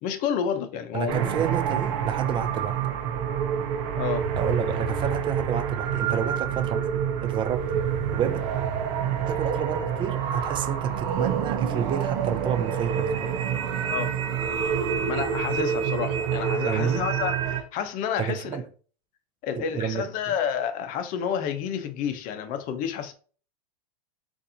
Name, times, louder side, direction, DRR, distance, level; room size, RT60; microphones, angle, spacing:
voice 1, 0.0-1.3 4.0-4.3 13.9-14.1 15.1-18.6 19.4-23.1, left 7 dB, 40° left, 0.7 m, -30 dB
voice 2, 0.9-2.8 4.4-7.7 8.1-8.4 9.3-13.3 16.6-17.1 18.2-18.6 19.6-20.4, right 8 dB, 25° right, 0.4 m, -30 dB
Cinematic tension mixdown, 1.1-17.6, right 8 dB, 55° right, 0.7 m, -27 dB
4.0 x 2.6 x 2.7 m
hypercardioid pair, 120°, 20 cm